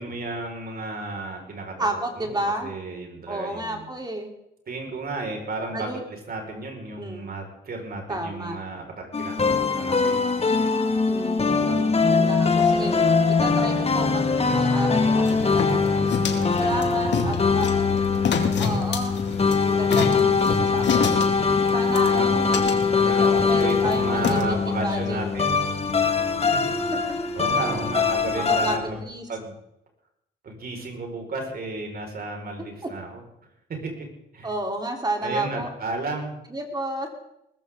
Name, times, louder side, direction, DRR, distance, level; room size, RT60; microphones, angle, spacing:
voice 1, 0.0-3.9 4.7-10.2 11.5-11.8 16.2-17.2 21.9-22.6 22.9-25.6 26.5-26.8 27.4-29.0 29.3-29.5 30.4-33.2 33.8-33.9 34.3-34.5 35.2-36.3, right 2 dB, 50° right, 2 dB, 5.2 m, -33 dB
voice 2, 1.8-2.7 3.3-4.3 5.7-6.0 7.0-7.3 8.1-8.6 11.1-13.0 13.3-15.9 16.6-17.7 18.6-19.2 19.6-21.2 21.7-22.7 23.2-25.2 28.3-29.3 32.6-32.9 34.4-35.7 36.5-37.1, right 1 dB, 20° right, 3 dB, 3.7 m, -31 dB
sound 1, 9.1-28.8, left 4 dB, 30° left, 2.0 m, -22 dB
sound 2, 12.5-29.0, equal, 5° right, 4.3 m, -43 dB
sound 3, 15.3-24.4, left 6 dB, 65° left, 2.4 m, -29 dB
20.5 x 14.0 x 3.8 m, 0.80 s
cardioid pair, 90°, 20 cm